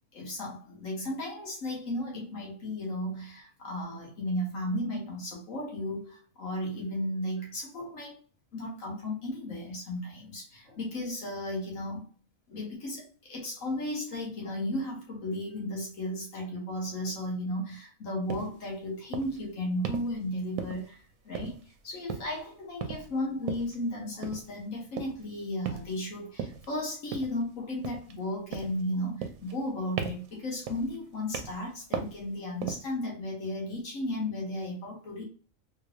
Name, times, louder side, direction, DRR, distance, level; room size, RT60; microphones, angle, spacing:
voice 1, 0.1-8.2 8.5-12.0 12.5-21.0 21.2-21.6 21.8-35.2, left 1 dB, 70° left, -2 dB, 1.6 m, -34 dB
sound 1, 18.3-18.5 19.1-19.4 19.8-20.1 20.6-21.0 21.4-21.8 22.1-22.4 22.8-23.1 23.5-23.8 24.2-24.5 25.0-25.3 25.7-26.0 26.4-26.7 27.1-27.4 27.8-28.2 28.5-28.8 29.2-29.7 30.0-30.3 30.7-31.0 31.3-31.7 31.9-32.2 32.6-32.9, right 7 dB, 80° right, 1.0 m, -37 dB
3.6 x 3.1 x 2.4 m, 0.40 s
omnidirectional pair, 1.4 m